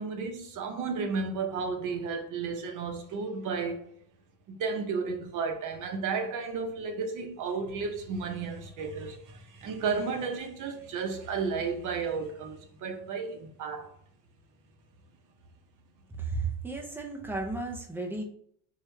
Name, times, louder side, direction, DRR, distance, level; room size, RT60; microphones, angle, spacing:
voice 1, 0.0-3.9 4.5-13.9, right 5 dB, 50° right, 0.7 m, -33 dB
voice 2, 16.1-18.2, right 3 dB, 5° right, 0.4 m, -34 dB
4.6 x 2.3 x 3.2 m
cardioid pair, 160°, 40 cm